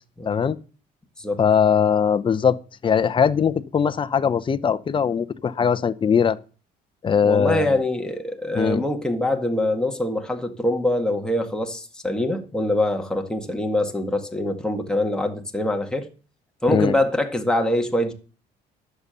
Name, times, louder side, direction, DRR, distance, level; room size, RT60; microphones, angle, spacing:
voice 1, 0.3-0.6 1.4-2.6 2.8-6.4 7.0-7.7 8.6-8.8 16.6-17.0, left 7 dB, 30° left, 0.7 m, -20 dB
voice 2, 7.2-16.1 16.6-18.1, left 1 dB, 5° left, 1.8 m, -24 dB
11.0 x 6.9 x 6.9 m
cardioid pair, 110°, 17 cm